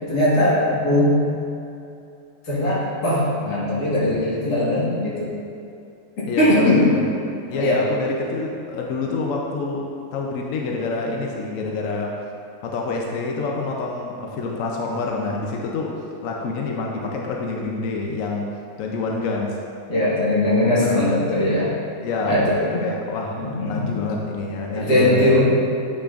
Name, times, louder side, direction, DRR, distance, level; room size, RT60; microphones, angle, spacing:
voice 1, 0.0-1.2 2.5-5.3 6.4-6.8 7.5-7.8 19.9-21.7 22.2-22.4 22.7-22.8 23.4-23.9 24.7-25.4, left 1 dB, 85° left, -9 dB, 2.4 m, -20 dB
voice 2, 6.3-7.0 7.5-12.2 12.6-18.5 18.8-19.6 20.8-21.1 22.0-25.4, left 3 dB, 65° left, -1 dB, 1.0 m, -27 dB
8.2 x 6.2 x 2.5 m, 2.6 s
omnidirectional pair, 1.6 m